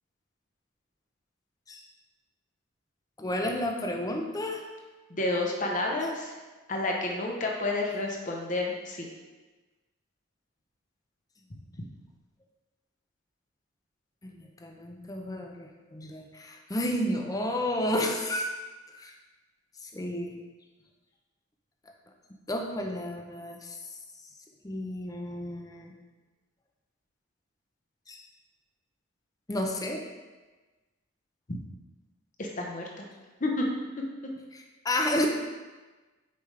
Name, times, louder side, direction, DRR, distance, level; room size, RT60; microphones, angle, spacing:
voice 1, 3.2-4.6 11.6-11.7 14.2-18.5 19.0-19.1 19.8-20.4 22.5-23.8 24.6-25.9 28.1-28.2 29.5-30.0 34.5-35.3, left 1 dB, 20° left, 2 dB, 0.6 m, -31 dB
voice 2, 5.1-6.3 6.7-9.1 31.5-31.6 32.4-33.0 33.4-33.6 34.0-34.1, left 2 dB, 40° left, 0 dB, 0.9 m, -30 dB
6.9 x 5.1 x 3.3 m, 1.2 s
head